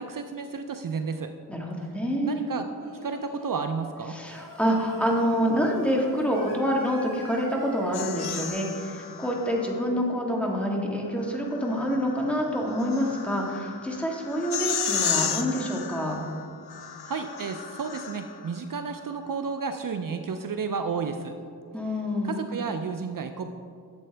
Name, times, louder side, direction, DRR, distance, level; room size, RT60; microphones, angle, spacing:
voice 1, 0.0-1.3 2.2-2.6 3.0-4.2 17.1-21.3 22.2-23.5, right 5 dB, 55° right, 7 dB, 0.5 m, -32 dB
voice 2, 1.5-2.4 4.1-16.2 21.7-22.4, equal, 5° left, -1 dB, 1.7 m, -27 dB
Singing, 2.8-3.6 4.3-8.5, left 1 dB, 50° left, 2.3 m, -44 dB
sound 1, 7.9-9.9 11.3-18.5, left 8 dB, 70° left, 0.7 m, -34 dB
11.5 x 7.6 x 3.4 m, 2.3 s
cardioid pair, 60°, 40 cm